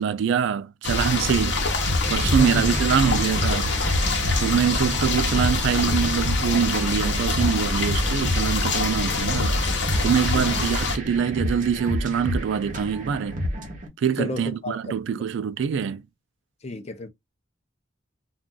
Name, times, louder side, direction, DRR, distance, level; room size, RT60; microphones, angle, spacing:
voice 1, 0.0-1.8 2.1-3.7 4.4-9.6 10.0-13.4 14.0-16.0, right 7 dB, 65° right, 0.3 m, -24 dB
sound 1, 0.8-11.0, left 3 dB, 60° left, 0.8 m, -25 dB
sound 2, 1.9-13.9, left 1 dB, 40° right, 0.8 m, -30 dB
voice 2, 14.2-15.2 16.6-17.1, left 2 dB, 35° left, 0.5 m, -32 dB
2.4 x 2.3 x 3.6 m
head